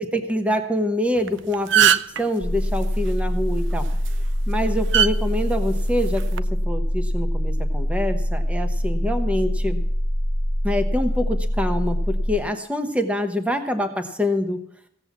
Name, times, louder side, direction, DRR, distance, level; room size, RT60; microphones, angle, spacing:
voice 1, 0.0-3.9 4.5-9.8 10.6-14.6, left 1 dB, 5° right, 6 dB, 1.0 m, -25 dB
sound 1, 1.2-1.3 1.5-2.2 3.8-4.1 4.9-5.1 6.1-6.4, right 10 dB, 60° right, 0.5 m, -17 dB
sound 2, 2.4-12.4, equal, 85° left, 1.5 m, -24 dB
16.0 x 7.9 x 7.2 m, 0.71 s
head